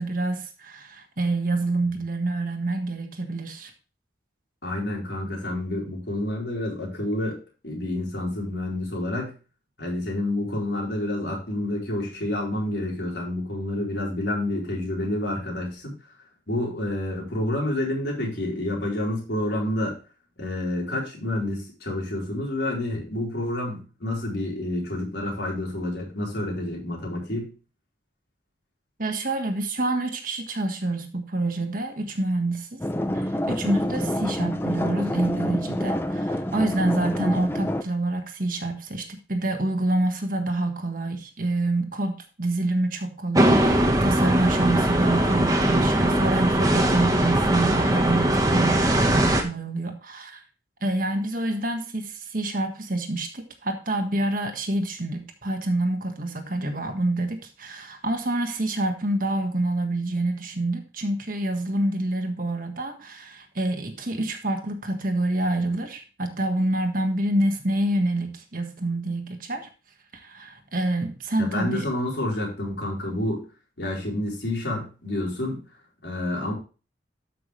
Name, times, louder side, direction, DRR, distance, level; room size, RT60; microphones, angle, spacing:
voice 1, 0.0-3.7 29.0-32.8 33.1-50.4 50.8-69.7 70.1-71.9, right 2 dB, 45° right, 6 dB, 1.5 m, -27 dB
voice 2, 4.6-7.4 7.6-9.3 9.8-15.9 16.5-20.0 20.4-27.5 71.4-73.4 73.8-75.6 76.0-76.5, left 1 dB, 65° left, -2 dB, 4.3 m, -29 dB
sound 1, 32.8-37.8, left 1 dB, 10° left, 0.6 m, -27 dB
sound 2, 43.3-49.4, right 1 dB, 20° right, 1.2 m, -20 dB
13.0 x 6.0 x 3.2 m, 0.34 s
head